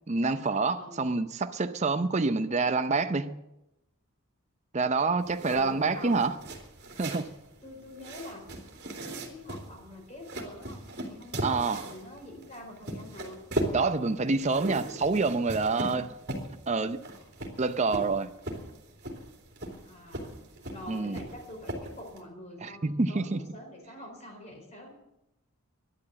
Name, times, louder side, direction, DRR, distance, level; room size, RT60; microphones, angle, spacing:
voice 1, 0.1-3.4 4.7-6.4 7.0-7.3 11.4-11.8 13.7-16.1 16.7-17.0 17.6-18.3 20.9-21.2 22.6-23.4, right 3 dB, 30° right, 0.5 m, -27 dB
sound 1, 5.2-22.2, right 1 dB, 50° right, 3.0 m, -39 dB
voice 2, 5.5-6.2 7.6-8.5 9.3-13.4 19.8-20.3 20.7-24.9, left 1 dB, 30° left, 4.5 m, -45 dB
12.5 x 11.0 x 7.7 m
head